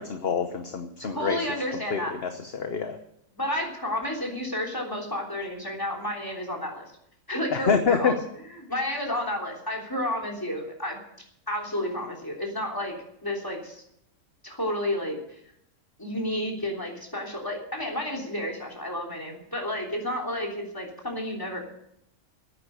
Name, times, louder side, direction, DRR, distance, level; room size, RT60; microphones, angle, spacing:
voice 1, 0.0-1.4 1.9-3.0 7.5-8.1, left 6 dB, 50° left, 7 dB, 1.1 m, -26 dB
voice 2, 1.0-2.1 3.3-6.9 7.3-8.2 8.7-11.0 11.5-12.9 13.2-13.8 14.4-15.4 16.0-21.6, left 1 dB, 15° left, 1 dB, 3.3 m, -31 dB
10.5 x 9.6 x 10.0 m, 0.76 s
omnidirectional pair, 1.5 m